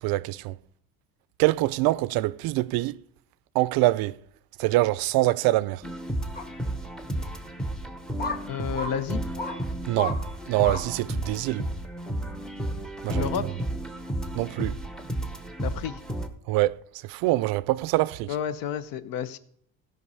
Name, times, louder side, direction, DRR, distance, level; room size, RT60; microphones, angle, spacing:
voice 1, 0.0-0.6 1.4-3.0 3.5-4.2 4.6-5.8 9.9-11.7 13.0-13.3 14.3-14.8 16.5-18.3, right 18 dB, 75° right, 0.5 m, -25 dB
sound 1, 5.8-16.3, right 1 dB, ahead, 0.7 m, -33 dB
sound 2, 6.4-6.5 7.2-7.3 8.2-8.4 8.7-8.9 9.4-9.6 10.0-10.2 10.6-10.8 11.3-11.4, left 3 dB, 25° left, 1.5 m, -32 dB
voice 2, 8.5-9.2 13.1-13.5 15.6-16.0 18.3-19.4, left 8 dB, 65° left, 0.9 m, -30 dB
16.0 x 5.4 x 5.5 m
cardioid pair, 155°, 36 cm